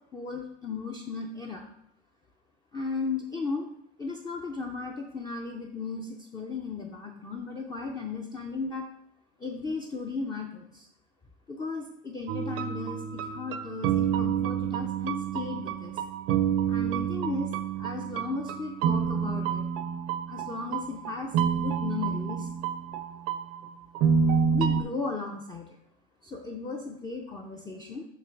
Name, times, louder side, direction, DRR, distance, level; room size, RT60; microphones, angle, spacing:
voice 1, 0.1-1.7 2.7-3.7 4.0-8.9 9.4-10.9 11.5-16.0 16.7-17.5 17.8-19.7 20.3-22.5 24.5-25.8 26.2-28.1, left 4 dB, 15° left, 1 dB, 0.5 m, -35 dB
sound 1, 12.3-24.8, right 7 dB, 45° right, 0.6 m, -28 dB
7.3 x 2.9 x 5.7 m, 0.76 s
supercardioid pair, 135°, 32 cm